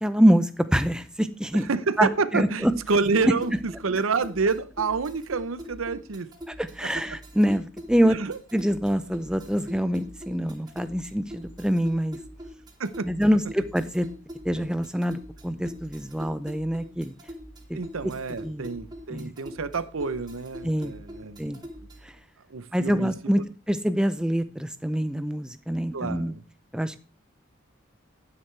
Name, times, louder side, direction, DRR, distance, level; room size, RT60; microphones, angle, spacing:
voice 1, 0.0-1.7 2.0-2.7 6.6-8.2 8.5-12.2 13.1-14.1 14.4-17.1 17.7-17.8 18.4-18.7 19.1-19.3 20.6-20.9 21.4-21.6 22.0-22.1 22.7-23.4 23.7-26.3 26.7-27.0, equal, 5° right, 0.5 m, -25 dB
voice 2, 1.5-6.3 8.1-8.4 12.8-13.1 17.7-21.4 22.5-23.4 25.9-26.4, right 4 dB, 85° right, 0.7 m, -28 dB
sound 1, 2.6-22.2, equal, 20° right, 1.8 m, -43 dB
12.0 x 9.8 x 3.3 m
head